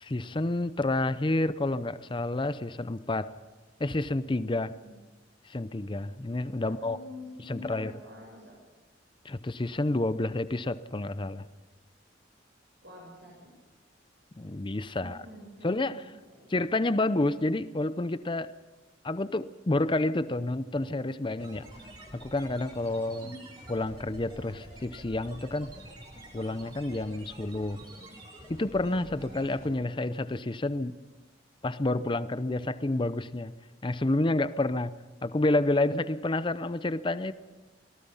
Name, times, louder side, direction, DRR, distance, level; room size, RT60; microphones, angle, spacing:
voice 1, 0.0-3.4 3.8-4.7 5.5-7.0 7.5-7.9 9.2-11.5 14.4-15.2 15.6-16.0 16.5-18.5 19.0-21.7 22.1-23.3 23.7-25.8 26.3-27.8 28.5-30.9 31.6-33.5 33.8-35.0 35.2-37.3, left 2 dB, 25° left, 14 dB, 0.6 m, -29 dB
voice 2, 6.6-8.6 12.8-13.5 15.0-15.8 16.1-16.5 23.2-23.4, left 1 dB, 80° right, -3 dB, 7.6 m, -47 dB
sound 1, 21.4-29.7, right 1 dB, 25° right, 8.0 m, -48 dB
25.0 x 18.5 x 5.6 m, 1.2 s
head